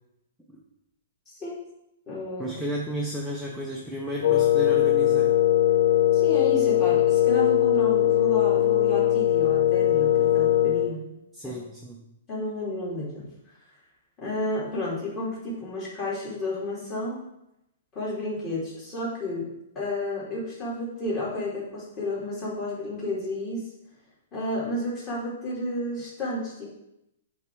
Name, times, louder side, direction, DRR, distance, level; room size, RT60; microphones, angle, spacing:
voice 1, 1.3-1.6 2.1-2.6 6.1-11.0 11.4-11.5 12.3-13.3 14.2-17.2 17.9-19.5 19.7-23.7 24.3-26.7, left 1 dB, 20° left, -7 dB, 2.6 m, -31 dB
voice 2, 2.4-5.3 11.3-12.0, right 1 dB, ahead, -4 dB, 0.6 m, -33 dB
Wind instrument woodwind instrument, 4.2-11.0, left 12 dB, 65° left, 0.5 m, -21 dB
8.4 x 3.4 x 4.5 m, 0.87 s
hypercardioid pair, 165°, 0 cm